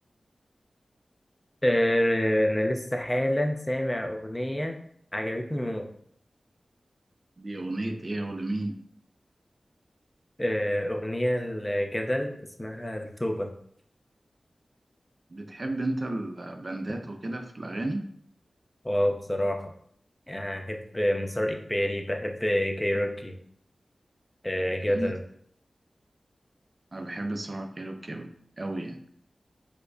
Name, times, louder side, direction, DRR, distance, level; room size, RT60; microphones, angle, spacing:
voice 1, 1.6-4.8 5.1-5.9 10.4-12.3 12.6-13.5 18.8-19.7 20.3-23.3 24.4-25.2, equal, 20° left, 4 dB, 0.5 m, -27 dB
voice 2, 7.4-8.8 15.3-18.1 24.8-25.1 26.9-28.3 28.6-29.0, right 2 dB, 50° right, 6 dB, 0.4 m, -33 dB
4.5 x 2.1 x 2.5 m, 0.66 s
cardioid pair, 45°, 0 cm